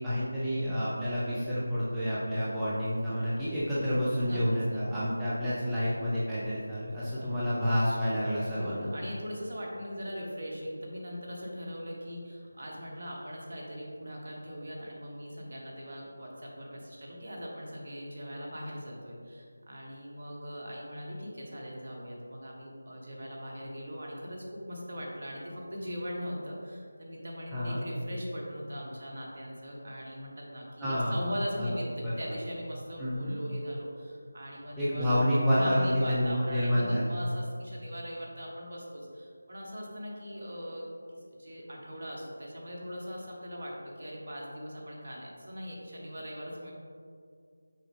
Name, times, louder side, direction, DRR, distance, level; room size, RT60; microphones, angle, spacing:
voice 1, 0.0-8.9 27.5-27.8 30.8-31.2 31.6-31.7 32.0-32.1 33.0-33.4 34.8-37.1, equal, 5° right, -12 dB, 0.7 m, -29 dB
voice 2, 4.3-4.8 7.2-7.3 8.5-35.1 35.5-46.7, equal, 45° right, -2 dB, 1.4 m, -40 dB
6.4 x 5.5 x 3.4 m, 2.2 s
figure-of-eight pair, 165°, 0 cm